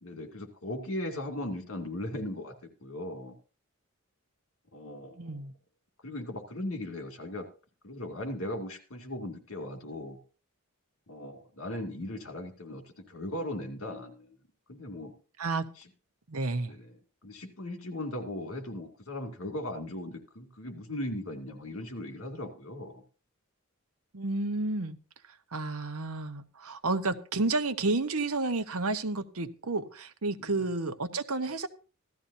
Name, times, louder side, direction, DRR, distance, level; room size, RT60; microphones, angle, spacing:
voice 1, 0.0-2.5 2.8-3.4 4.7-5.4 6.0-7.5 7.8-10.2 11.1-14.4 14.7-15.1 15.8-15.9 16.7-23.0 30.4-30.6, left 1 dB, 65° left, 3 dB, 2.5 m, -38 dB
voice 2, 5.2-5.5 15.4-15.7 16.3-16.7 24.1-25.0 25.5-31.7, right 3 dB, 80° right, 9 dB, 1.0 m, -31 dB
16.5 x 13.0 x 2.7 m, 0.36 s
head